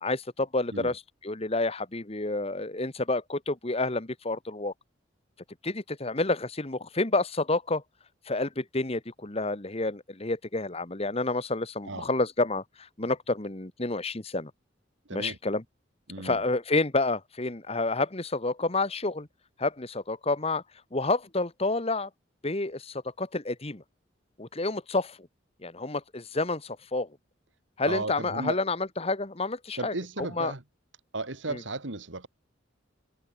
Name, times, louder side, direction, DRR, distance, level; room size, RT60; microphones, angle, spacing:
voice 1, 0.0-4.7 5.6-7.8 8.3-14.5 15.1-15.6 16.2-19.3 19.6-20.6 20.9-22.1 22.4-23.8 24.4-25.3 25.6-27.1 27.8-29.9 30.4-30.5 31.5-31.6, left 2 dB, 30° left, 1.5 m, -29 dB
voice 2, 15.1-15.4 16.1-16.4 27.9-28.6 29.8-30.6 31.1-32.3, right 2 dB, 75° right, 2.3 m, -35 dB
head